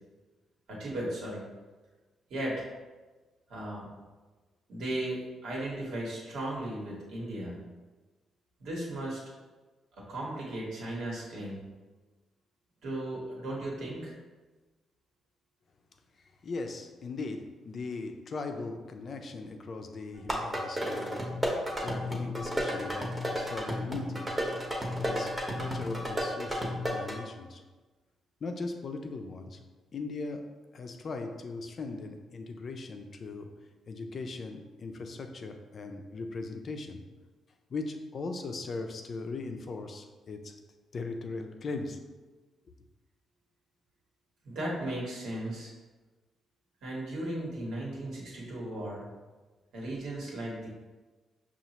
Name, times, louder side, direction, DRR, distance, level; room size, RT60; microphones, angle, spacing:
voice 1, 0.7-1.4 2.3-2.7 3.5-3.9 4.7-7.6 8.6-9.2 10.0-11.6 12.8-14.1 44.4-45.7 46.8-49.1 49.7-50.7, right 1 dB, 80° right, -4 dB, 1.3 m, -36 dB
voice 2, 16.2-24.3 25.0-27.6 28.4-29.6 29.9-33.6 33.9-37.0 37.7-40.5 40.9-42.0, left 3 dB, 50° left, 5 dB, 0.4 m, -39 dB
sound 1, 20.2-27.2, equal, 15° right, 0.9 m, -33 dB
5.3 x 2.4 x 2.9 m, 1.3 s
cardioid pair, 75°, 0 cm